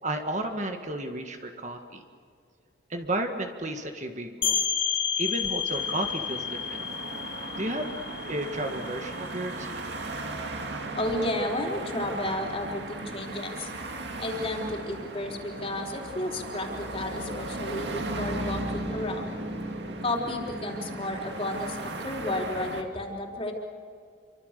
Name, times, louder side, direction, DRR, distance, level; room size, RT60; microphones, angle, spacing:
voice 1, 0.0-2.0 2.9-4.6 5.2-6.8 7.6-8.0 8.2-9.9, right 1 dB, 35° right, 5 dB, 1.7 m, -33 dB
sound 1, 4.4-9.9, left 8 dB, 85° left, 2.6 m, -31 dB
sound 2, 5.7-22.8, right 2 dB, 60° right, 2.6 m, -36 dB
voice 2, 10.9-13.7 14.2-19.3 20.0-23.5, left 1 dB, 30° left, 0 dB, 3.9 m, -32 dB
28.5 x 24.5 x 6.8 m, 2.2 s
head